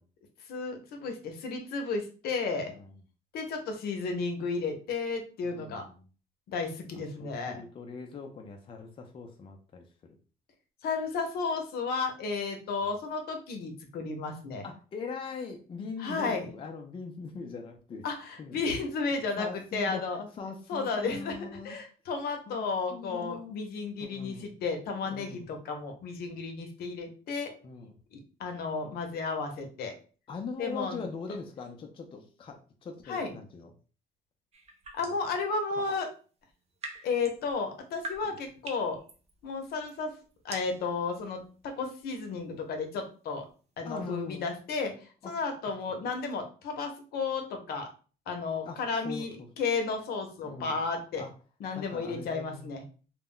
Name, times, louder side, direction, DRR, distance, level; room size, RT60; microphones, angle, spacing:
voice 1, 0.5-2.7 3.3-5.8 6.5-7.6 10.8-14.6 16.0-16.5 18.0-20.3 20.7-27.5 28.1-29.9 30.6-31.0 33.1-33.3 34.9-36.1 37.0-39.0 39.4-40.1 40.4-43.5 43.8-44.9 45.2-47.9 48.3-51.2 51.6-52.8, left 4 dB, 70° left, 4 dB, 0.7 m, -33 dB
voice 2, 5.4-6.1 6.9-10.2 12.8-12.9 14.6-18.1 18.4-18.6 19.4-21.8 22.5-23.6 24.0-24.5 25.0-25.5 27.6-28.0 30.3-33.7 35.0-35.2 35.7-35.8 38.2-38.4 43.8-44.5 45.2-45.3 48.6-49.5 50.4-50.8 51.2-51.3 51.8-52.9, left 4 dB, 30° left, 3 dB, 0.4 m, -41 dB
sound 1, 34.5-35.3 36.4-44.1, right 2 dB, 40° right, 0.6 m, -47 dB
2.2 x 2.0 x 3.6 m, 0.38 s
cardioid pair, 110°, 17 cm